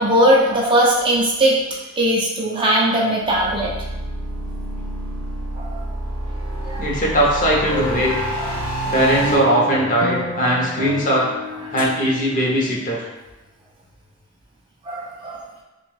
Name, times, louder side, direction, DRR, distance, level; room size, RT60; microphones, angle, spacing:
voice 1, 0.0-1.6 2.0-3.7 5.5-5.8 6.6-6.8 8.4-8.5 10.4-10.5 14.9-15.5, right 1 dB, 25° right, -3 dB, 0.4 m, -19 dB
sound 1, 3.2-9.3, right 1 dB, 85° right, 0.6 m, -28 dB
voice 2, 6.8-8.1 8.9-11.3 11.7-13.0, equal, 40° left, -4 dB, 0.7 m, -19 dB
sound 2, 7.5-13.1, left 1 dB, 75° left, 0.4 m, -30 dB
2.9 x 2.2 x 3.1 m, 1.0 s
head